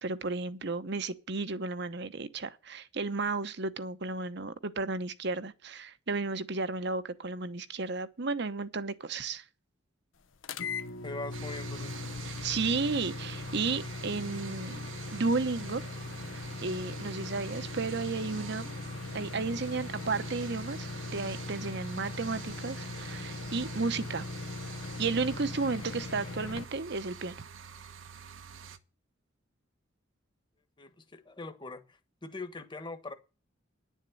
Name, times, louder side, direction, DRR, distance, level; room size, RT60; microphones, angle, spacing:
voice 1, 0.0-9.4 12.3-14.8 15.1-15.8 16.3-18.7 19.1-24.3 25.0-27.4, right 3 dB, 60° right, 0.9 m, -33 dB
sound 1, 10.4-26.6, left 3 dB, 75° left, 0.7 m, -40 dB
voice 2, 11.0-12.0 30.8-33.1, left 3 dB, 25° left, 1.3 m, -42 dB
sound 2, 11.3-28.8, right 7 dB, 85° right, 1.2 m, -47 dB
10.5 x 7.4 x 7.7 m
head